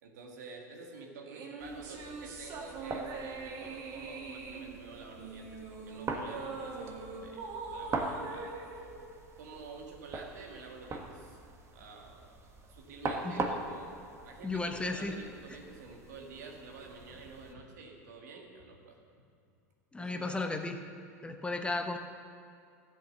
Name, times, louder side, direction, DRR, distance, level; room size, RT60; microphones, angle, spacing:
voice 1, 0.0-8.6 9.4-11.4 11.7-12.4 12.7-19.0 20.0-20.4, right 3 dB, 80° right, 1 dB, 2.0 m, -49 dB
sound 1, 1.3-9.9, right 4 dB, 50° right, 2.1 m, -43 dB
sound 2, 1.6-17.5, right 3 dB, 30° right, 1.5 m, -42 dB
voice 2, 14.4-15.2 19.9-20.8 21.2-22.0, left 2 dB, 10° left, 5 dB, 1.0 m, -34 dB
13.5 x 7.9 x 6.6 m, 2.5 s
hypercardioid pair, 90°, 9 cm